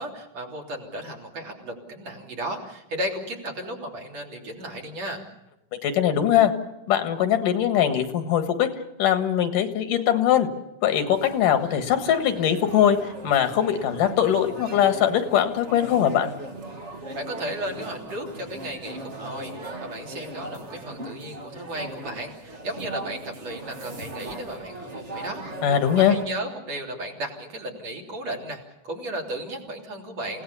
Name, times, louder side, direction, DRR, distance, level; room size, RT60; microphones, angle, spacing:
voice 1, 0.0-5.3 17.1-25.4 26.0-30.4, right 1 dB, 55° right, 0 dB, 4.5 m, -34 dB
voice 2, 5.8-6.5 6.9-8.7 9.0-10.5 10.8-13.0 13.2-16.3 25.6-26.2, left 10 dB, 80° left, 8 dB, 3.2 m, -21 dB
sound 1, 11.1-26.2, right 2 dB, 30° right, 1.3 m, -39 dB
29.0 x 17.5 x 7.0 m, 0.91 s
omnidirectional pair, 3.7 m